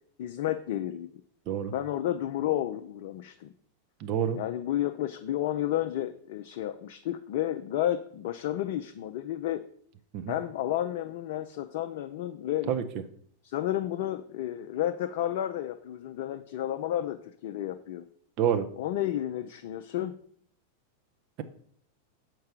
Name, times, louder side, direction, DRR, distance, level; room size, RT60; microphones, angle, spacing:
voice 1, 0.2-1.1 1.7-3.5 4.3-9.6 10.3-12.7 13.4-18.0 18.8-20.1, left 12 dB, 50° left, 8 dB, 0.4 m, -31 dB
voice 2, 4.0-4.4 10.1-10.3 12.7-12.8 18.4-18.7, right 9 dB, 40° right, 8 dB, 0.7 m, -27 dB
6.5 x 4.6 x 5.9 m, 0.62 s
figure-of-eight pair, 90°, 0 cm